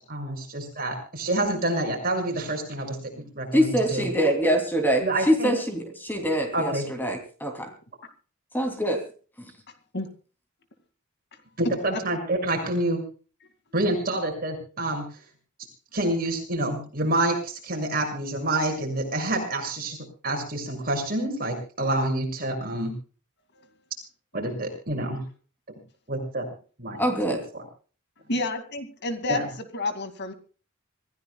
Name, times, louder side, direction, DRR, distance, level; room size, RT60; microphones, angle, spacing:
voice 1, 0.1-3.0 3.3-4.0 5.0-5.5 6.5-6.9 11.6-13.0 13.7-15.0 15.9-20.0 20.2-22.9 24.3-25.2 26.1-26.5 26.8-27.0 29.3-29.4, right 1 dB, 45° right, 2 dB, 6.6 m, -27 dB
voice 2, 3.5-7.7 8.5-9.0 9.4-9.5 27.0-27.4, equal, 10° left, 5 dB, 2.9 m, -24 dB
voice 3, 28.3-29.4 29.7-30.3, left 2 dB, 50° left, 9 dB, 2.3 m, -29 dB
26.0 x 15.5 x 2.3 m, 0.39 s
head